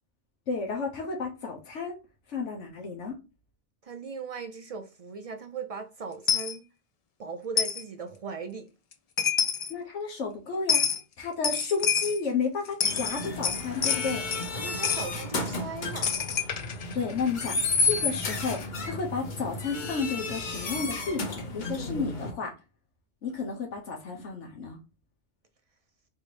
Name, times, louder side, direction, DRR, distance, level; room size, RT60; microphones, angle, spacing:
voice 1, 0.5-2.0 2.3-3.2 9.7-10.9 11.2-14.2 16.8-22.5 23.2-24.8, left 4 dB, 90° left, 1.2 m, -32 dB
voice 2, 3.8-6.6 7.2-8.7 14.5-16.2, right 5 dB, 60° right, 0.3 m, -38 dB
Coin (dropping), 6.3-6.5 7.6-7.8 8.9-9.0 9.2-9.7 10.7-11.0 11.4-12.2 12.7-14.5 14.8-15.1 16.0-18.7, left 7 dB, 65° left, 0.3 m, -28 dB
sound 1, 12.8-22.3, left 3 dB, 45° left, 0.8 m, -32 dB
4.0 x 3.3 x 3.1 m
omnidirectional pair, 1.2 m